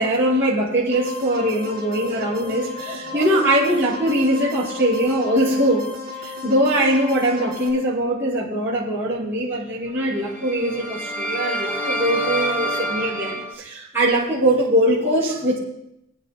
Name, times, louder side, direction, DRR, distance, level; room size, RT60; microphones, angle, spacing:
voice 1, 0.0-5.8 6.2-15.6, right 1 dB, 10° right, -10 dB, 5.1 m, -21 dB
sound 1, 0.9-7.7, left 3 dB, 50° right, 3.6 m, -35 dB
sound 2, 10.1-13.5, equal, 10° left, 1.1 m, -27 dB
24.5 x 10.0 x 2.3 m, 0.83 s
head